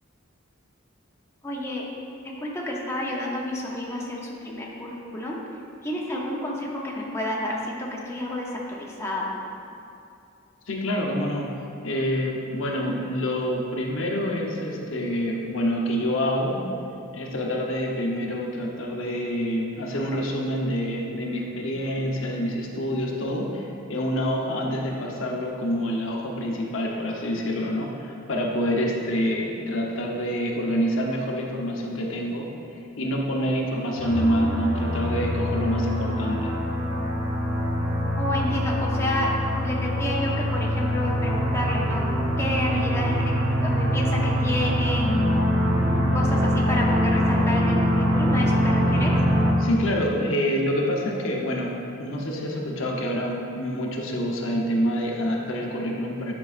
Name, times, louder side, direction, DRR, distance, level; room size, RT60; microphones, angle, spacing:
voice 1, 1.4-1.8 2.4-5.4 5.8-9.4 38.2-39.3 39.6-42.0 42.4-43.3 43.6-45.1 46.1-49.1, left 1 dB, 15° left, -3 dB, 0.7 m, -29 dB
voice 2, 10.7-11.5 11.8-16.6 17.1-32.5 33.0-36.5 49.6-56.3, equal, 80° left, -1 dB, 0.8 m, -27 dB
sound 1, 34.0-49.5, equal, 70° right, 1.3 m, -24 dB
9.5 x 5.5 x 2.5 m, 2.6 s
head